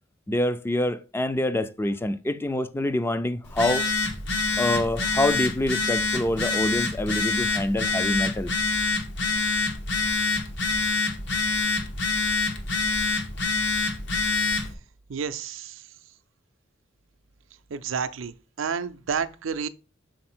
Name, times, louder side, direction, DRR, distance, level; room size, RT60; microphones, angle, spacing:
voice 1, 0.3-3.8 4.6-8.5, left 1 dB, 10° left, 0.4 m, -26 dB
Telephone, 3.4-14.7, left 3 dB, 65° left, 1.2 m, -26 dB
voice 2, 15.1-15.6 17.7-18.3 18.6-19.7, right 6 dB, 75° right, 0.5 m, -29 dB
6.5 x 4.1 x 4.3 m
head